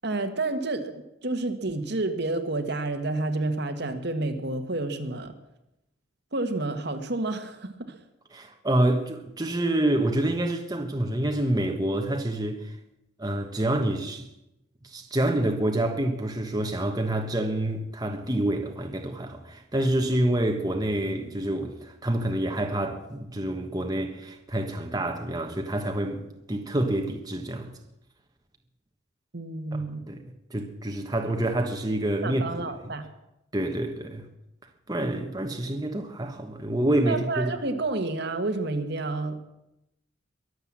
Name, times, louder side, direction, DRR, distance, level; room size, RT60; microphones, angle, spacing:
voice 1, 0.0-5.3 6.3-7.7 29.3-30.1 32.2-33.0 37.1-39.4, right 2 dB, 55° right, 1.5 m, -29 dB
voice 2, 8.3-12.8 13.2-14.3 14.8-27.7 29.7-30.2 30.5-32.9 33.5-34.3 34.9-37.5, right 1 dB, 20° right, 1.2 m, -27 dB
22.5 x 7.9 x 7.5 m
head